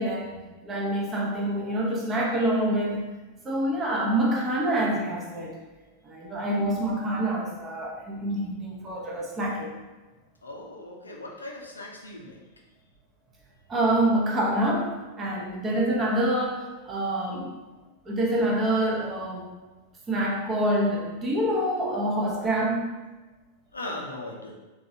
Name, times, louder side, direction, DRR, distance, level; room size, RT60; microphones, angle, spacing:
voice 1, 0.0-3.1 3.4-5.6 6.0-9.8 13.7-17.6 18.1-19.5 20.1-22.9, right 1 dB, 20° right, -3 dB, 0.7 m, -26 dB
voice 2, 10.4-12.4 23.7-24.5, left 1 dB, 75° left, -1 dB, 0.5 m, -38 dB
3.8 x 2.4 x 2.7 m, 1.2 s
figure-of-eight pair, 90°, 0 cm